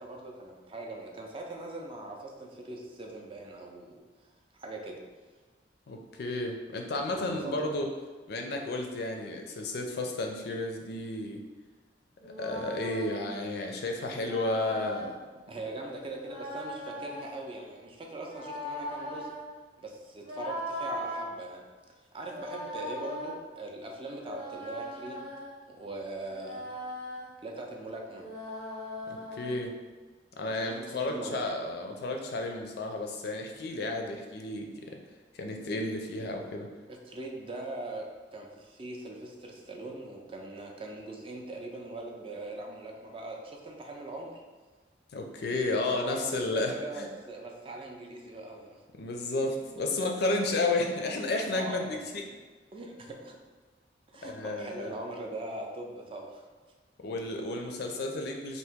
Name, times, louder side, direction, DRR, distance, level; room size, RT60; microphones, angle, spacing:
voice 1, 0.0-5.0 7.1-7.8 15.5-19.3 19.8-21.7 22.1-25.3 25.7-26.7 27.4-28.3 30.5-31.4 36.9-44.4 45.9-48.8 49.6-49.8 50.4-50.5 51.5-51.9 52.7-53.4 54.1-56.5, right 2 dB, 30° right, 1 dB, 0.4 m, -41 dB
voice 2, 5.9-7.9 8.3-11.4 12.2-15.2 29.1-29.7 30.4-35.0 35.4-36.7 45.1-47.1 49.0-52.0 54.2-54.9 57.0-58.6, left 2 dB, 65° left, 2 dB, 0.4 m, -32 dB
sound 1, 12.2-13.3 14.2-15.2 16.2-17.4 18.2-19.4 20.2-21.3 22.2-23.3 24.2-25.6 26.2-27.3 28.2-29.6, equal, 80° right, 1.0 m, -39 dB
2.8 x 2.6 x 3.4 m, 1.3 s
head